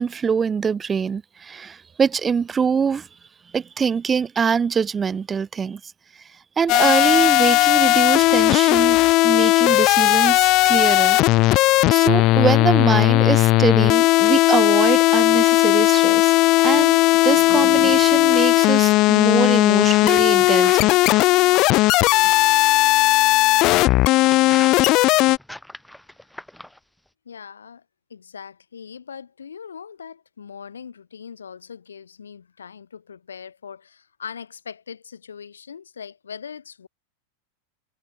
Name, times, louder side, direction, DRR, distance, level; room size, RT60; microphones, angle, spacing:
voice 1, 0.0-3.2 3.5-11.2 11.4-21.0, right 6 dB, 20° right, 0.5 m, -24 dB
sound 1, 6.7-25.4, left 20 dB, 40° left, 0.4 m, -16 dB
sound 2, 19.7-22.8 23.5-26.8, left 1 dB, ahead, 3.9 m, -40 dB
voice 2, 27.3-27.8 28.1-36.9, left 7 dB, 70° left, 5.7 m, -40 dB
figure-of-eight pair, 90°, 0 cm